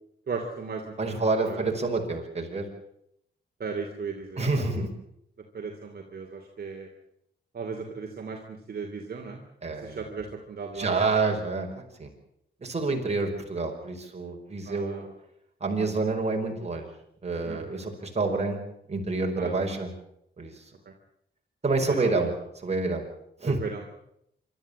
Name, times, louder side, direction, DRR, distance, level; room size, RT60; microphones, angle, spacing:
voice 1, 0.3-1.2 1.5-1.7 3.6-4.4 5.5-6.9 7.5-9.4 9.8-11.0 14.6-15.1 17.4-17.9 19.4-19.8 20.8-20.9 21.9-22.3 23.4-24.0, right 4 dB, 55° right, 1 dB, 3.0 m, -36 dB
voice 2, 1.0-2.6 4.4-4.9 9.6-10.1 10.7-12.1 12.6-15.1 15.6-16.9 17.2-18.6 18.9-19.9 20.4-20.5 21.6-22.3 22.6-23.1 23.4-23.6, right 3 dB, 35° right, 1 dB, 5.3 m, -28 dB
26.0 x 13.0 x 8.8 m, 0.76 s
cardioid pair, 90°, 19 cm